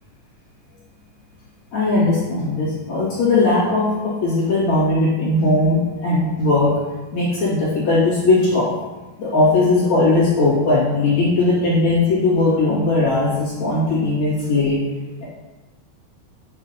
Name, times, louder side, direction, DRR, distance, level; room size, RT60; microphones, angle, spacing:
voice 1, 1.7-6.7 7.1-8.7 9.2-14.8 15.2-15.3, left 2 dB, 50° left, -8 dB, 2.9 m, -18 dB
7.9 x 7.9 x 2.8 m, 1.2 s
omnidirectional pair, 4.4 m